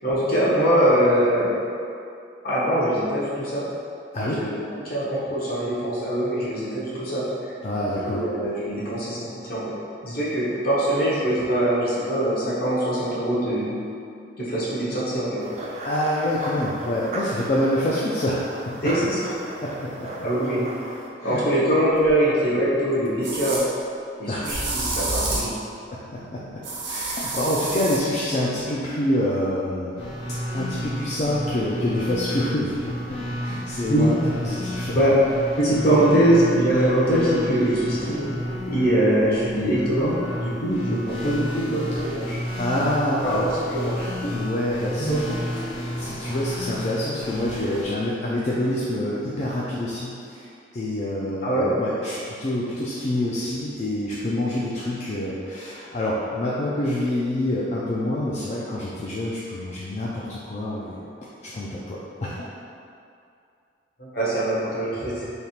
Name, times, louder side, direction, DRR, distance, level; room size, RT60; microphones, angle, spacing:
voice 1, 0.0-1.6 2.4-3.6 4.2-7.2 8.0-9.8 10.0-13.7 14.4-15.4 18.8-19.1 20.2-20.6 21.2-23.6 24.2-25.5 33.9-34.0 34.9-35.2 35.6-38.3 38.7-42.4 43.2-44.1 45.0-45.3 51.4-51.7 64.0-65.3, right 1 dB, 55° left, -8 dB, 1.1 m, -23 dB
voice 2, 4.1-4.5 7.6-8.2 15.8-18.9 19.6-20.1 21.2-21.4 24.3-24.5 25.9-30.1 30.4-34.2 34.4-35.0 42.6-43.5 44.3-45.2 45.9-50.5 50.7-61.0 61.4-62.5, left 1 dB, 40° left, -6 dB, 0.4 m, -27 dB
sound 1, 15.4-21.1, right 1 dB, 40° right, 0.4 m, -35 dB
sound 2, 22.0-22.1 23.2-23.6 24.4-25.6 26.6-28.0, right 2 dB, 75° right, 0.7 m, -28 dB
sound 3, 30.0-47.8, equal, 85° left, 1.5 m, -32 dB
3.4 x 2.4 x 4.2 m, 2.5 s
head